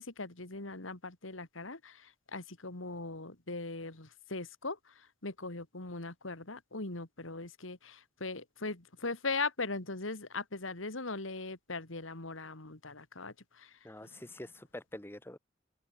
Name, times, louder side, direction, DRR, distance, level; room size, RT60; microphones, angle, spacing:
voice 1, 0.0-14.3, left 3 dB, 85° left, 2.8 m, -40 dB
voice 2, 13.8-15.4, left 1 dB, 10° left, 1.0 m, -46 dB
open air
head